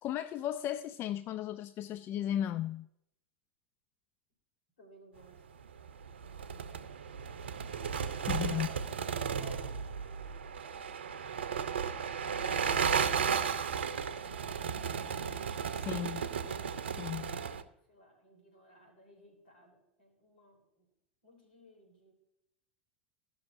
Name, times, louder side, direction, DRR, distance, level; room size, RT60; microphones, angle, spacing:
voice 1, 0.0-2.9 8.3-8.7 15.7-16.3 17.0-17.5, left 11 dB, 40° left, 0.3 m, -35 dB
voice 2, 4.8-5.4 7.9-10.4 16.7-20.9 21.2-22.1, left 1 dB, 75° left, 3.8 m, -59 dB
sound 1, 5.6-17.6, right 6 dB, 80° right, 0.6 m, -34 dB
16.0 x 6.1 x 2.6 m
hypercardioid pair, 90°, 6 cm